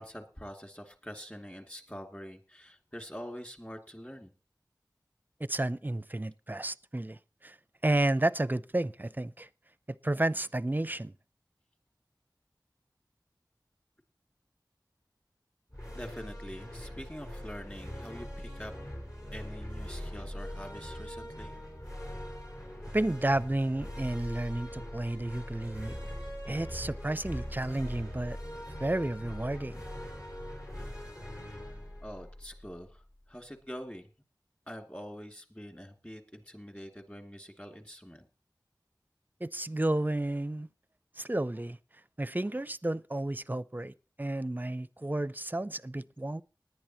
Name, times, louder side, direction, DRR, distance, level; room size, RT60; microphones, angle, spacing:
voice 1, 0.0-4.3 15.9-18.7 19.3-21.5 32.0-34.1 34.7-38.3, equal, 20° left, 2.5 m, -45 dB
voice 2, 5.4-7.6 7.8-9.5 9.9-11.1 22.9-26.0 26.5-28.4 28.8-29.8 39.4-40.7 41.2-41.8 42.2-46.4, right 1 dB, 25° right, 0.5 m, -31 dB
sound 1, 15.7-33.2, equal, 55° left, 4.6 m, -42 dB
19.0 x 10.5 x 3.0 m
wide cardioid pair, 45°, 8 cm